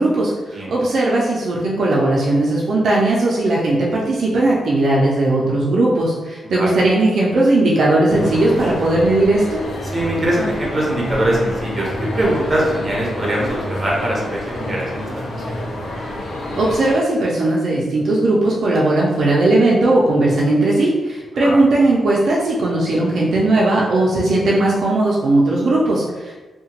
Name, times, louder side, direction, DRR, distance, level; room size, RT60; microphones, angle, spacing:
voice 1, 0.0-9.6 16.6-26.3, right 2 dB, 55° right, -4 dB, 0.4 m, -17 dB
voice 2, 6.4-6.7 9.9-15.7 21.4-21.6, right 1 dB, 25° right, -4 dB, 0.7 m, -22 dB
sound 1, 8.1-16.9, left 1 dB, 75° left, 0.6 m, -28 dB
2.8 x 2.2 x 2.8 m, 1.2 s
wide cardioid pair, 150°, 0 cm